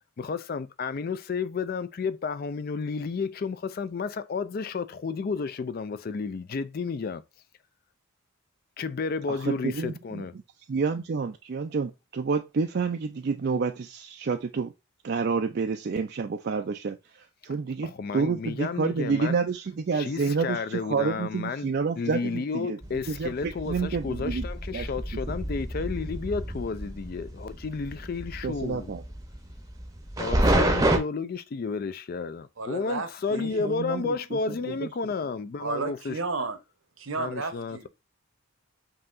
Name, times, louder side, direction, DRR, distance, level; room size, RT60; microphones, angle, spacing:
voice 1, 0.2-7.2 8.8-10.3 17.8-19.4 19.9-21.7 22.0-28.9 30.2-36.2 37.2-37.9, left 4 dB, 45° left, 0.3 m, -32 dB
voice 2, 9.3-10.2 10.7-14.7 15.0-24.5 24.7-24.9 25.3-25.4 28.4-29.0 33.4-34.9, right 4 dB, 50° right, 0.4 m, -29 dB
sound 1, 22.8-31.0, right 1 dB, 15° right, 0.7 m, -28 dB
voice 3, 32.6-33.7 35.6-36.6 37.0-37.9, right 4 dB, 70° right, 0.9 m, -33 dB
5.4 x 2.8 x 2.4 m
head